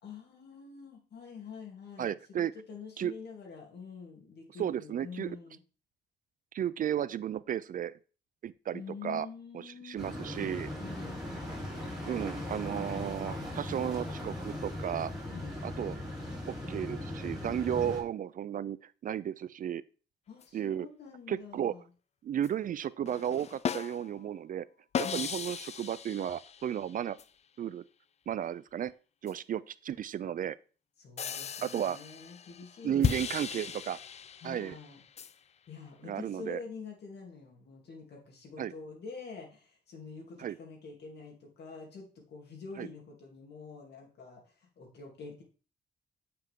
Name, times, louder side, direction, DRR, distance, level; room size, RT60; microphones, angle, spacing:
voice 1, 0.0-5.6 8.7-10.3 10.8-11.3 15.3-15.6 17.8-17.9 20.3-21.9 25.0-25.3 31.0-33.7 34.4-35.0 35.7-45.4, left 5 dB, 60° left, 0 dB, 2.9 m, -46 dB
voice 2, 2.0-2.5 3.0-3.1 4.6-5.4 6.5-8.0 8.4-9.3 9.5-10.7 12.0-15.1 15.6-16.0 16.5-19.8 20.5-20.9 21.3-21.7 22.2-24.7 25.0-27.2 27.6-27.8 28.3-28.9 29.2-30.6 31.6-32.0 32.8-34.0 34.4-34.7 36.0-36.6 38.6-38.7 40.4-40.6 42.8-42.9, right 10 dB, 45° right, 17 dB, 0.4 m, -34 dB
sound 1, 10.0-18.0, left 1 dB, ahead, 4.6 m, -39 dB
sound 2, 20.4-20.5 22.4-22.5 23.1-24.3 24.9-27.2 29.3-29.4 31.2-35.3, left 7 dB, 35° left, 0.4 m, -37 dB
9.0 x 5.8 x 3.7 m, 0.37 s
cardioid pair, 120°, 19 cm